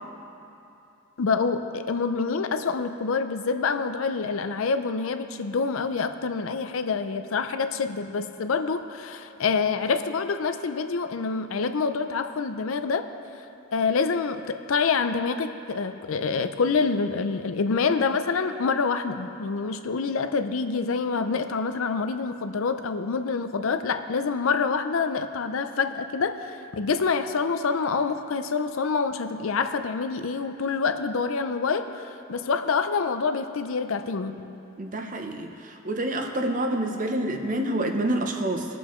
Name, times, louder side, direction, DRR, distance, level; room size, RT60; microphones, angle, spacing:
voice 1, 1.2-13.1 13.7-34.4, left 5 dB, 80° left, 9 dB, 0.5 m, -26 dB
voice 2, 34.8-38.7, right 1 dB, 40° right, 4 dB, 0.7 m, -27 dB
20.5 x 7.0 x 3.1 m, 2.8 s
head